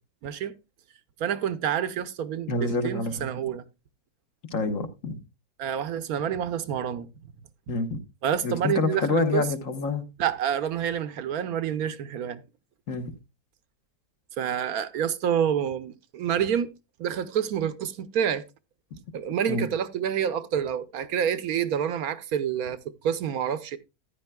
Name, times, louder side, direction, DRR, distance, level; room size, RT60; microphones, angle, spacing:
voice 1, 0.2-0.6 1.2-3.6 5.6-7.1 8.2-9.5 10.2-12.4 14.4-16.7 17.0-18.4 19.1-23.8, right 9 dB, 70° right, 1.1 m, -28 dB
voice 2, 2.5-3.4 4.5-5.2 7.7-8.0 8.4-10.0 12.9-13.1 19.5-19.7, left 3 dB, 55° left, 1.5 m, -27 dB
14.0 x 9.9 x 2.2 m
omnidirectional pair, 1.7 m